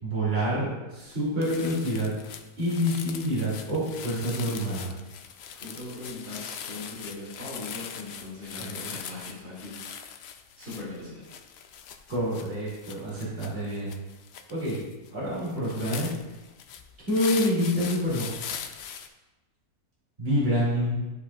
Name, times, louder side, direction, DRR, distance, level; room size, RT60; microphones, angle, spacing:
voice 1, 0.0-2.1 2.6-4.9 8.6-9.0 12.1-13.9 14.5-14.8 15.1-16.1 17.1-18.3 20.2-20.9, equal, 40° right, -8 dB, 2.7 m, -27 dB
sound 1, 1.0-1.1 1.4-19.1, left 8 dB, 75° left, 0.6 m, -41 dB
voice 2, 5.5-10.1 10.6-11.2, left 2 dB, 60° right, -8 dB, 2.9 m, -40 dB
11.5 x 5.2 x 2.3 m, 1.1 s
omnidirectional pair, 1.6 m